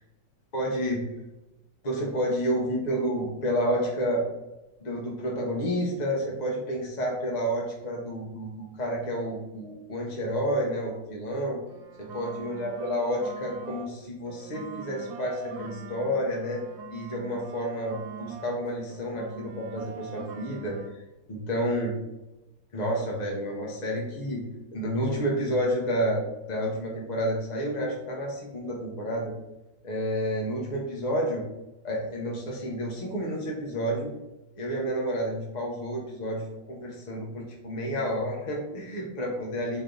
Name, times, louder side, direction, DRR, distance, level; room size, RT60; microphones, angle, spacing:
voice 1, 0.5-1.0 1.8-4.2 4.8-11.6 12.0-16.6 16.9-20.8 21.3-22.0 22.7-24.4 24.7-29.3 29.8-31.4 31.8-34.1 34.6-39.8, equal, 40° left, -2 dB, 0.6 m, -30 dB
sound 1, 11.7-13.9 14.3-18.6 18.9-20.9, right 6 dB, 70° right, 1.1 m, -43 dB
4.2 x 3.3 x 3.8 m, 0.99 s
omnidirectional pair, 1.9 m